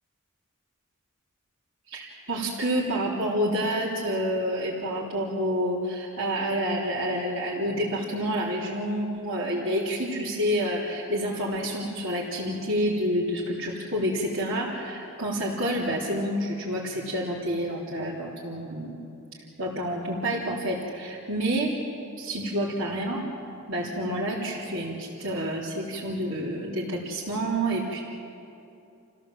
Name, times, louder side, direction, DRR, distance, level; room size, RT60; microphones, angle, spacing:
voice 1, 1.9-19.0 19.6-21.7 22.2-23.2 23.7-28.0, equal, 65° right, -8 dB, 3.6 m, -28 dB
29.5 x 16.5 x 7.7 m, 2.8 s
head